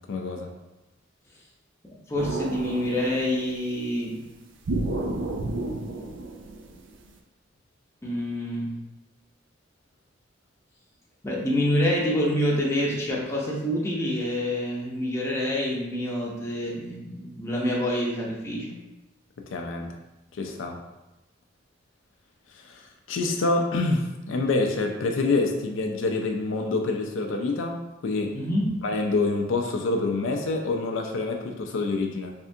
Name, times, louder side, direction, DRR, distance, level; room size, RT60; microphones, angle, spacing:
voice 1, 0.1-0.5 19.5-19.9 20.4-20.8 22.5-22.8 23.1-28.4 28.8-32.3, left 3 dB, 75° left, 3 dB, 0.4 m, -26 dB
voice 2, 1.8-4.2 8.0-8.7 11.2-18.7 28.3-28.7, left 1 dB, 15° left, -4 dB, 0.7 m, -27 dB
sound 1, 2.2-3.6 4.7-7.1, right 2 dB, 70° right, 0.5 m, -31 dB
3.5 x 3.3 x 2.7 m, 1.0 s
head